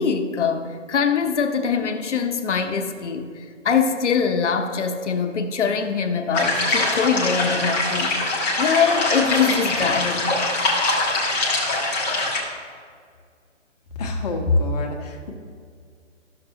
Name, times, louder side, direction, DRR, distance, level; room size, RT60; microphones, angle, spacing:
voice 1, 0.0-10.4, left 6 dB, 70° left, 6 dB, 0.8 m, -23 dB
sound 1, 6.3-12.4, left 2 dB, 10° left, 0.6 m, -23 dB
voice 2, 13.9-15.3, left 2 dB, 35° left, 2 dB, 0.9 m, -24 dB
12.0 x 6.7 x 2.7 m, 2.1 s
hypercardioid pair, 145°, 37 cm